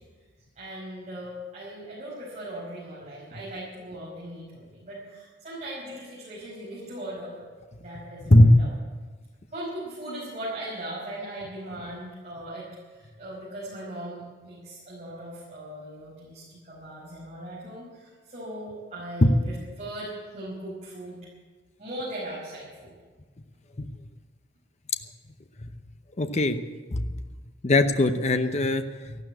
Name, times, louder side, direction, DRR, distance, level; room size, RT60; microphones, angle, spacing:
voice 1, 0.6-7.3 7.8-8.7 9.5-21.2 21.8-22.9, right 1 dB, 40° right, -8 dB, 5.2 m, -39 dB
voice 2, 8.3-8.7 19.2-19.3 23.8-23.9 26.2-26.6 26.9-27.1 27.6-29.2, left 1 dB, 35° left, 8 dB, 0.8 m, -19 dB
14.0 x 12.5 x 8.1 m, 1.4 s
head